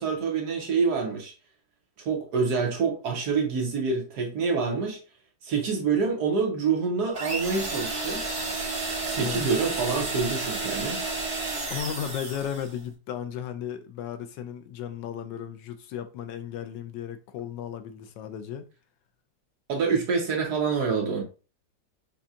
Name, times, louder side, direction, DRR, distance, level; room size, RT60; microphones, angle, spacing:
voice 1, 0.0-1.3 2.0-5.0 5.4-8.2 9.1-11.0 19.7-21.2, right 5 dB, 60° right, 1.5 m, -26 dB
sound 1, 7.1-12.8, right 3 dB, 35° right, 1.6 m, -31 dB
voice 2, 11.7-18.6, left 9 dB, 80° left, 1.2 m, -35 dB
6.1 x 2.3 x 2.7 m
omnidirectional pair, 2.0 m